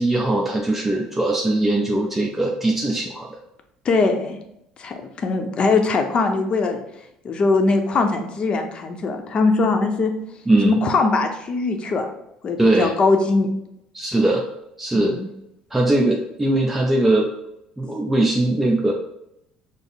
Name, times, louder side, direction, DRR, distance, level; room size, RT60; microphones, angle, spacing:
voice 1, 0.0-3.4 10.5-10.8 12.6-12.9 13.9-14.4 14.8-15.2 15.7-17.3 17.8-18.9, right 2 dB, 10° right, -1 dB, 0.5 m, -20 dB
voice 2, 3.8-4.4 4.8-6.8 7.2-10.1 10.6-12.1 12.4-13.5 14.9-15.3, left 3 dB, 45° left, 5 dB, 0.7 m, -21 dB
5.1 x 2.0 x 3.9 m, 0.81 s
supercardioid pair, 90°, 2 cm